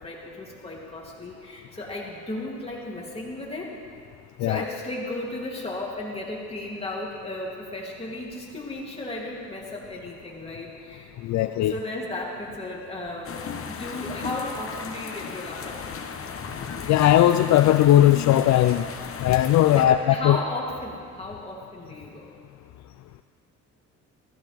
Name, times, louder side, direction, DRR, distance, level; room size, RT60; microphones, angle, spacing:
voice 1, 0.0-3.7 4.4-11.1 11.7-13.4 13.7-16.1 19.7-22.3, left 2 dB, 20° left, -4 dB, 3.0 m, -35 dB
voice 2, 11.2-11.7 16.6-18.9 19.2-20.4, left 13 dB, 65° left, 10 dB, 0.4 m, -18 dB
sound 1, 13.2-19.9, left 6 dB, 45° left, 1.0 m, -36 dB
15.0 x 14.5 x 3.6 m, 2.1 s
cardioid pair, 90°, 30 cm